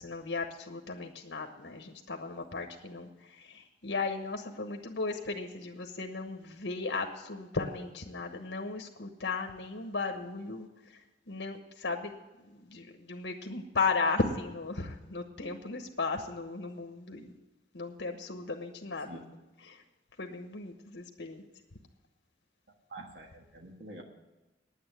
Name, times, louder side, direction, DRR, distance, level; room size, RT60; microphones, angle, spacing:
voice 1, 0.0-17.3 17.7-19.2 19.6-19.8 20.2-21.4, left 3 dB, 80° left, 4 dB, 1.2 m, -36 dB
voice 2, 22.9-24.0, right 2 dB, 65° right, 2 dB, 1.5 m, -46 dB
9.6 x 9.5 x 8.2 m, 1.1 s
head